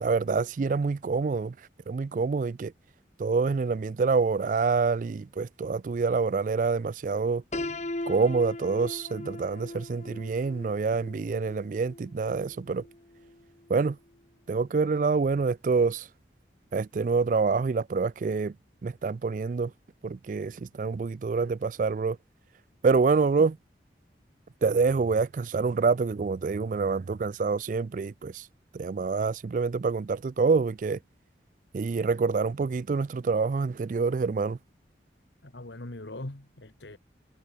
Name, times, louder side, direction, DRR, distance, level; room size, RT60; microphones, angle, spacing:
voice 1, 0.0-2.7 3.2-7.4 8.1-12.9 13.7-14.0 14.5-16.1 16.7-18.6 18.8-19.7 20.0-22.2 22.8-23.6 24.6-28.5 28.7-31.0 31.7-34.6, right 4 dB, 45° right, 0.3 m, -26 dB
Piano, 7.5-13.4, left 2 dB, 40° left, 1.4 m, -39 dB
voice 2, 35.4-37.0, left 1 dB, 75° left, 1.8 m, -41 dB
head